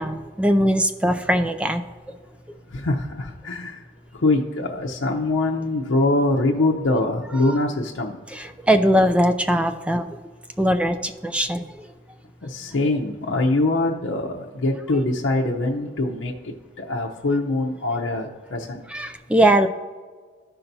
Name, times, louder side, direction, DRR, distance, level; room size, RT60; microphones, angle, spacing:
voice 1, 0.0-1.8 7.4-7.6 8.3-10.2 10.6-11.7 18.9-19.7, equal, 5° right, 8 dB, 0.3 m, -20 dB
voice 2, 2.7-3.8 4.2-8.2 12.4-18.8, left 2 dB, 80° left, -2 dB, 0.7 m, -23 dB
14.5 x 5.7 x 2.7 m, 1.5 s
head